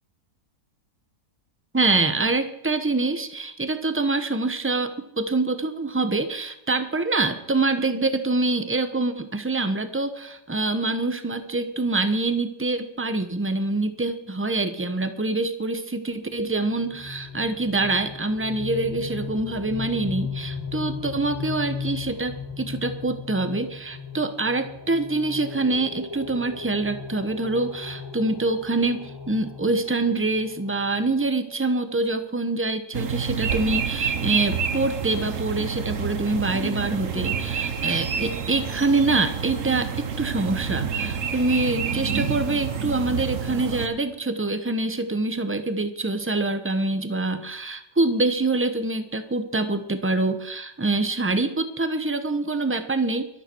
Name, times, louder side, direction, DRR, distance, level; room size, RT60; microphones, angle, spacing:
voice 1, 1.7-53.3, right 2 dB, 10° right, 9 dB, 0.8 m, -25 dB
sound 1, 16.6-31.3, left 5 dB, 15° left, 1.1 m, -36 dB
sound 2, 32.9-43.9, right 7 dB, 55° right, 1.4 m, -28 dB
23.5 x 8.8 x 4.6 m, 0.87 s
omnidirectional pair, 1.8 m